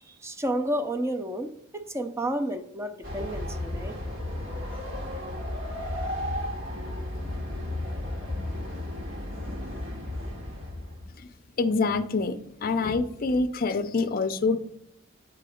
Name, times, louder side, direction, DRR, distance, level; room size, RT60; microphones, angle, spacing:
voice 1, 0.1-4.0, right 1 dB, 15° right, 6 dB, 0.5 m, -31 dB
Train, 3.0-11.2, left 1 dB, 65° right, 1.7 m, -34 dB
voice 2, 11.6-14.6, left 3 dB, 45° left, 11 dB, 0.5 m, -26 dB
8.4 x 3.9 x 4.9 m, 0.73 s
head